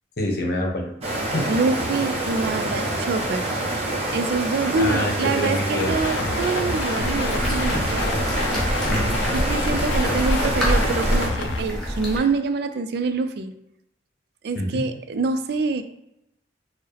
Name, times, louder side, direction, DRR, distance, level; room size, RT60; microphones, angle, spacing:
voice 1, 0.2-0.9 1.3-1.5 4.7-6.0 8.9-9.2 14.5-14.8, left 1 dB, 55° left, 0 dB, 0.8 m, -26 dB
sound 1, 1.0-11.3, right 1 dB, 35° right, 0.8 m, -27 dB
voice 2, 1.5-3.4 4.1-8.2 9.3-13.5 14.4-15.8, right 4 dB, 60° right, 9 dB, 0.3 m, -25 dB
sound 2, 5.8-11.6, left 3 dB, 80° left, 0.4 m, -30 dB
sound 3, 7.0-12.2, equal, 5° left, 0.8 m, -26 dB
4.5 x 2.0 x 3.3 m, 0.84 s
head